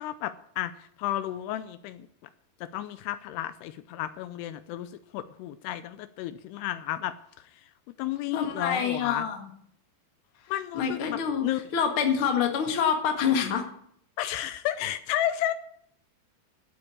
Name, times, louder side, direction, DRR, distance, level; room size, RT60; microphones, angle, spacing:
voice 1, 0.0-2.1 2.6-7.2 8.0-9.3 10.5-11.6 14.2-15.5, left 13 dB, 80° left, 13 dB, 2.6 m, -32 dB
voice 2, 8.3-9.5 10.7-11.4 11.7-13.6, left 7 dB, 45° left, 4 dB, 2.0 m, -26 dB
12.0 x 8.2 x 8.5 m, 0.68 s
omnidirectional pair, 4.8 m